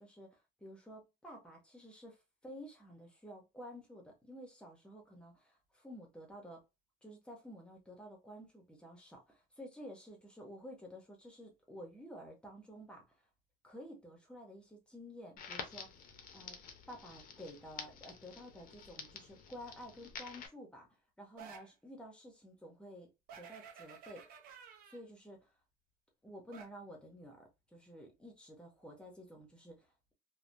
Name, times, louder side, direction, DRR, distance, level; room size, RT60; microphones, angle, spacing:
voice 1, 0.0-2.2 2.4-6.6 7.0-13.0 13.6-15.9 16.3-16.6 16.9-20.9 21.2-23.1 23.4-24.3 24.9-25.5 26.2-29.9, equal, 5° left, 0.6 m, -51 dB
Crackle, 15.4-20.5, left 6 dB, 45° left, 0.6 m, -49 dB
sound 1, 21.4-21.7 23.3-25.0 26.5-26.7, right 7 dB, 45° right, 0.6 m, -53 dB
3.2 x 2.1 x 2.5 m
cardioid pair, 180°, 20 cm